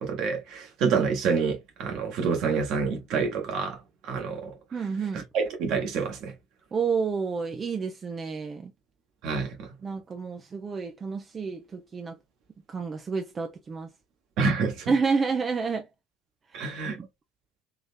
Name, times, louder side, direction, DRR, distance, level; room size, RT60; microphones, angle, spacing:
voice 1, 0.0-4.5 5.1-6.3 9.2-9.7 14.4-14.9 16.5-17.0, right 5 dB, 55° right, 1.4 m, -28 dB
voice 2, 4.7-5.2 6.7-8.7 9.8-12.1 12.7-13.9 14.9-15.8 17.0-17.1, right 5 dB, 30° right, 0.6 m, -29 dB
3.8 x 3.1 x 2.6 m
figure-of-eight pair, 65°, 0 cm